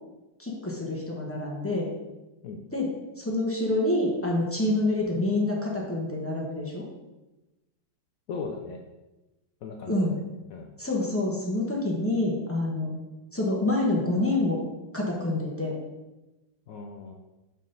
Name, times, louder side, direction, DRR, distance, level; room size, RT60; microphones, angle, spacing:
voice 1, 0.4-1.9 2.7-2.9 3.2-6.8 9.9-10.2 10.8-12.9 13.3-14.6 14.9-15.8, left 2 dB, 10° left, -2 dB, 0.6 m, -27 dB
voice 2, 8.3-8.8 9.6-10.2 10.5-10.7 16.7-17.1, left 4 dB, 85° left, 2 dB, 0.7 m, -37 dB
6.6 x 3.9 x 5.3 m, 1.1 s
omnidirectional pair, 2.2 m